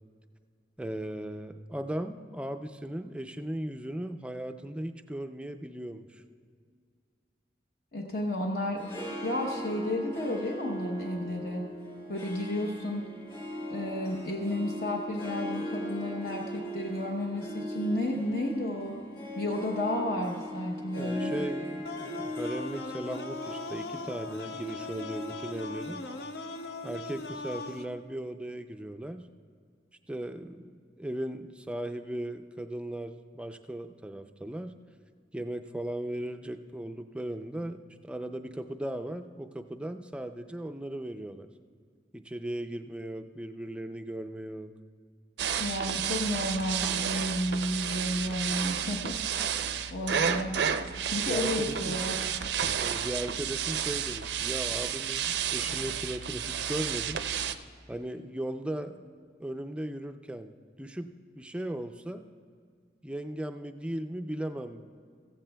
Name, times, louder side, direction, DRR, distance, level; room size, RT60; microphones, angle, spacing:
voice 1, 0.8-6.2 21.0-26.1 26.8-29.3 30.1-34.8 35.3-41.5 42.1-44.7 51.3-52.0 52.8-57.2 57.9-59.1 59.4-62.3 63.0-64.9, right 1 dB, 5° right, 7 dB, 0.3 m, -37 dB
voice 2, 7.9-8.8 9.2-11.7 12.1-13.0 13.7-19.0 19.4-21.3 45.6-49.2 49.9-50.6 51.0-52.2, left 1 dB, 55° left, 0 dB, 0.9 m, -32 dB
Harp, 8.6-28.0, equal, 30° left, 3.4 m, -39 dB
sound 1, 21.9-27.9, left 2 dB, 75° left, 0.5 m, -40 dB
sound 2, 45.4-57.6, right 8 dB, 80° right, 0.5 m, -31 dB
15.0 x 14.5 x 2.2 m, 2.1 s
head